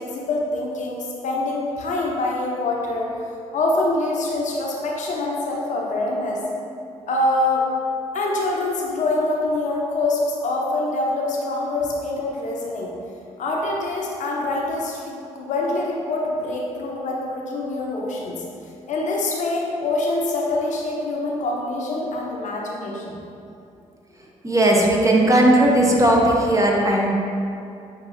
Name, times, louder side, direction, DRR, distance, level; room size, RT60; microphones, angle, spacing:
voice 1, 0.0-3.1 3.5-6.4 7.1-7.7 8.1-12.9 13.4-18.4 18.9-23.2, left 2 dB, 55° left, -2 dB, 0.7 m, -25 dB
voice 2, 24.4-27.1, right 1 dB, 20° right, -2 dB, 0.8 m, -17 dB
5.6 x 2.7 x 2.6 m, 2.6 s
hypercardioid pair, 45°, 15 cm